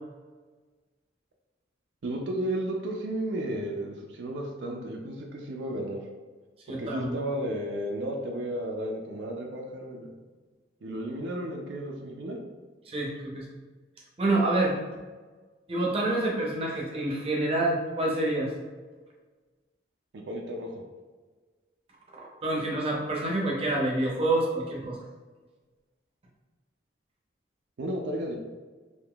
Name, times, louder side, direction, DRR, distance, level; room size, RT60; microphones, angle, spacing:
voice 1, 2.0-6.0 6.7-10.1 10.8-12.4 20.1-20.8 27.8-28.4, right 1 dB, 75° right, 1 dB, 0.4 m, -33 dB
voice 2, 6.7-7.2 12.9-13.4 14.2-14.8 15.7-18.5 22.2-25.0, right 2 dB, 30° right, -3 dB, 0.6 m, -27 dB
3.6 x 2.6 x 2.3 m, 1.4 s
head